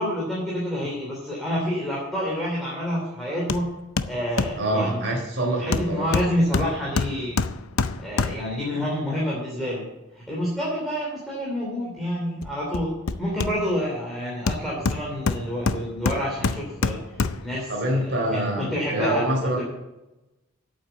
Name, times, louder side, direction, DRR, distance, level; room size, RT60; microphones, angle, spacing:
voice 1, 0.0-3.7 4.0-7.4 8.0-9.9 10.1-12.9 13.2-18.0 18.3-19.2 19.6-19.7, equal, ahead, -6 dB, 2.9 m, -28 dB
Hammer, 3.5-3.7 4.0-4.6 5.7-8.6 12.4-13.9 14.5-17.6 18.0-18.1, left 4 dB, 85° left, 0.6 m, -27 dB
voice 2, 4.6-6.2 17.7-19.6, right 1 dB, 55° right, -1 dB, 3.8 m, -26 dB
8.8 x 8.0 x 8.1 m, 0.99 s
head